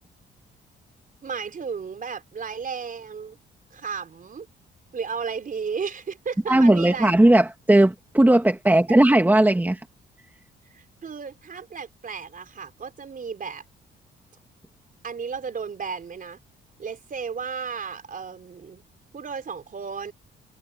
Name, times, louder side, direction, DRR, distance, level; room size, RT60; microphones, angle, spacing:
voice 1, 1.2-3.4 3.7-4.5 4.9-7.1 8.9-9.0 10.7-13.6 15.0-16.4 16.8-18.8 19.1-20.1, right 6 dB, 45° right, 4.6 m, -34 dB
voice 2, 6.5-9.8, right 1 dB, 10° right, 2.0 m, -17 dB
cardioid pair, 90°, 20 cm